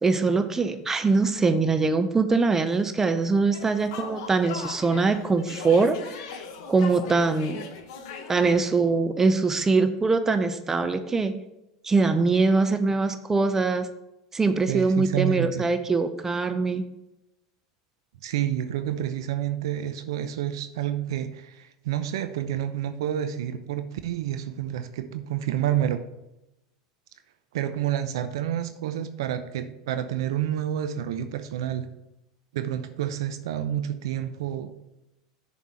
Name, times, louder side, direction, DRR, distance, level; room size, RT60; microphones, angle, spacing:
voice 1, 0.0-6.0 6.7-7.6 8.3-11.4 11.8-13.9 14.3-16.8, right 4 dB, 15° right, 10 dB, 0.7 m, -23 dB
sound 1, 3.5-8.5, left 5 dB, 60° left, 1.1 m, -39 dB
voice 2, 14.6-15.7 18.2-26.0 27.5-31.9 32.5-34.8, right 11 dB, 70° right, 9 dB, 0.6 m, -29 dB
6.8 x 4.3 x 6.3 m, 0.90 s
hypercardioid pair, 85°, 3 cm